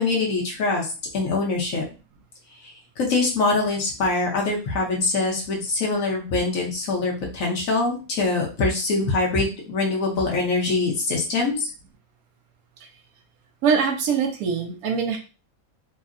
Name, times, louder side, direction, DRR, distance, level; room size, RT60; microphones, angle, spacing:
voice 1, 0.0-1.8 3.0-11.7, left 3 dB, 70° left, -2 dB, 1.3 m, -24 dB
voice 2, 13.6-15.2, right 6 dB, 80° right, 3 dB, 1.1 m, -23 dB
3.6 x 2.1 x 2.5 m, 0.33 s
omnidirectional pair, 1.5 m